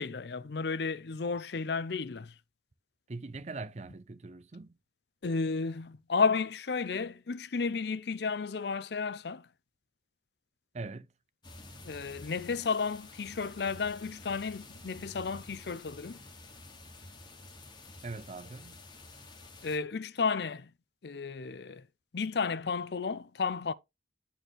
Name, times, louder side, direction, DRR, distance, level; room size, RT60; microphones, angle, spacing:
voice 1, 0.0-2.3 5.2-9.5 11.8-16.2 19.6-20.7 21.0-21.9 22.1-23.7, left 5 dB, 65° left, 0.5 m, -32 dB
voice 2, 3.1-4.8 10.7-11.1 18.0-18.9, right 3 dB, 35° right, 0.5 m, -42 dB
sound 1, 11.4-19.8, left 2 dB, 25° left, 1.4 m, -50 dB
10.5 x 4.4 x 3.1 m
head